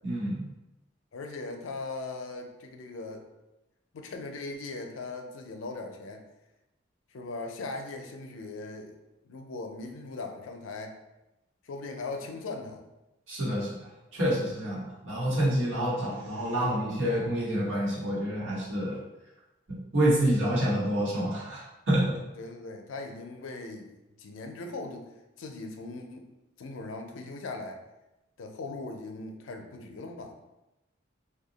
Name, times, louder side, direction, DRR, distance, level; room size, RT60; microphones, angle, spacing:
voice 1, 0.0-0.5 13.3-19.0 19.7-22.2, right 1 dB, 80° right, -6 dB, 1.2 m, -28 dB
voice 2, 1.1-3.3 3.9-6.2 7.1-8.9 9.2-11.0 11.6-12.8 22.4-23.9 24.2-25.1 25.4-26.3 26.6-27.8 28.4-30.4, left 3 dB, 85° left, 4 dB, 0.5 m, -39 dB
2.8 x 2.3 x 3.8 m, 0.97 s
head